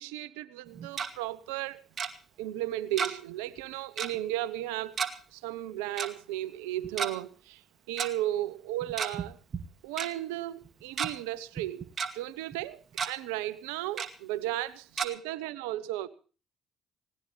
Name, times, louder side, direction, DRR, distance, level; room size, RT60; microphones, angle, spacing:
voice 1, 0.0-1.9 2.4-4.9 5.3-7.6 7.9-9.4 9.8-16.1, right 14 dB, 85° right, 1.0 m, -35 dB
Tick-tock, 0.7-1.1 2.0-2.1 3.0-3.3 3.6-3.7 4.0-4.2 5.0-5.1 6.0-6.1 6.8-7.1 8.0-8.1 8.8-9.3 9.5-9.6 10.0-10.1 10.6-11.1 11.6-12.1 12.5-12.6 12.9-13.1 14.0-14.1 15.0-15.1, right 6 dB, 45° right, 2.2 m, -32 dB
19.5 x 18.0 x 3.3 m
hypercardioid pair, 60°, 0 cm